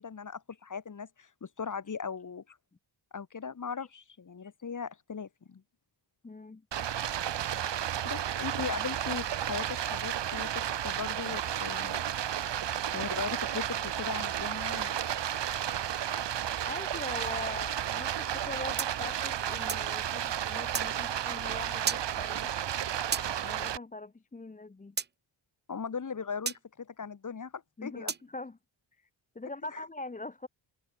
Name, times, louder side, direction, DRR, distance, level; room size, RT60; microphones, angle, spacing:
voice 1, 0.0-2.6 3.1-5.6 8.0-12.0 12.9-15.1 25.7-28.1 29.7-29.8, left 6 dB, 40° left, 2.1 m, -38 dB
voice 2, 6.2-6.6 16.6-22.5 23.4-24.9 27.8-28.6 29.3-30.5, left 2 dB, 15° left, 0.9 m, -42 dB
Stream, 6.7-23.8, right 10 dB, 55° right, 1.1 m, -33 dB
sound 1, 18.8-19.9 20.7-20.9 21.9-22.1 23.1-23.3 25.0-25.1 26.5-26.6 28.1-28.3, right 6 dB, 25° right, 0.3 m, -33 dB
wide cardioid pair, 135°, 49 cm